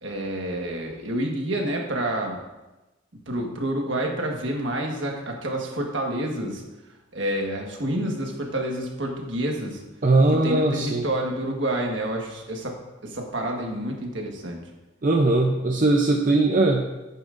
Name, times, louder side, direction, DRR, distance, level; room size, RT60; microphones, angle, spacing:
voice 1, 0.0-2.4 3.3-6.6 7.1-9.8 10.4-14.6, right 1 dB, 65° right, 0 dB, 1.5 m, -28 dB
voice 2, 10.0-11.1 15.0-16.9, right 2 dB, 40° right, 1 dB, 0.6 m, -20 dB
11.0 x 9.1 x 2.6 m, 1.1 s
head